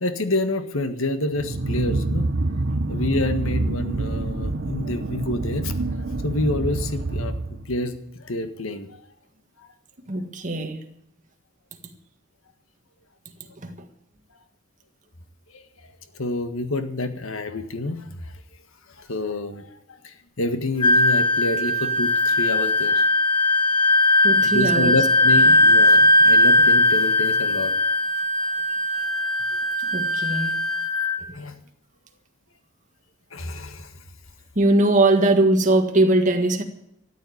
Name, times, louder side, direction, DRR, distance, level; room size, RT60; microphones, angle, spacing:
voice 1, 0.0-2.3 2.9-5.7 6.2-8.9 9.6-9.7 15.5-15.6 16.1-18.4 19.0-19.7 20.0-23.1 24.4-27.7 28.5-28.6 31.3-31.6 33.3-33.9, left 2 dB, 75° left, 1.6 m, -28 dB
sound 1, 1.3-7.9, right 2 dB, 55° right, 0.9 m, -27 dB
voice 2, 10.1-10.8 13.6-13.8 24.2-24.9 25.5-25.6 29.9-30.7 34.5-36.6, right 2 dB, 40° right, 1.7 m, -20 dB
Wind instrument woodwind instrument, 20.8-31.2, left 1 dB, 20° left, 1.6 m, -19 dB
13.5 x 9.3 x 8.7 m
head